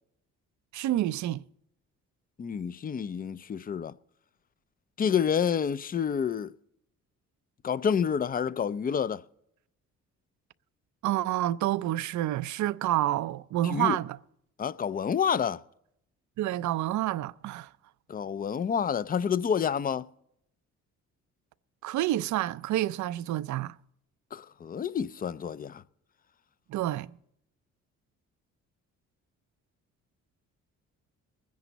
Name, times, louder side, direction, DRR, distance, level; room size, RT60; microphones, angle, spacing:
voice 1, 0.7-1.4 11.0-14.2 16.4-17.7 21.8-23.8 26.7-27.1, right 14 dB, 70° right, 0.5 m, -28 dB
voice 2, 2.4-3.9 5.0-6.5 7.6-9.2 13.6-14.0 14.6-15.6 18.1-20.1 24.3-25.8, left 7 dB, 30° left, 0.5 m, -28 dB
22.5 x 10.5 x 4.0 m
cardioid pair, 90°, 30 cm